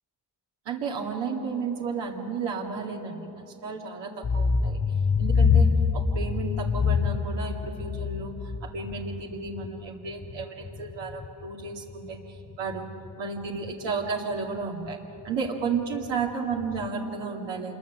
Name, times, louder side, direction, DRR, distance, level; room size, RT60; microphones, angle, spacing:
voice 1, 0.7-4.8 5.2-12.9 13.2-15.0 15.2-17.8, right 4 dB, 90° right, 0 dB, 2.4 m, -33 dB
sound 1, 4.2-11.5 11.9-13.1 13.6-13.7 14.1-14.2 14.6-14.7 14.9-15.0 15.3-15.5 15.8-16.9, left 5 dB, 20° left, 0.5 m, -26 dB
26.5 x 21.5 x 7.3 m, 3.0 s
cardioid pair, 95°, 42 cm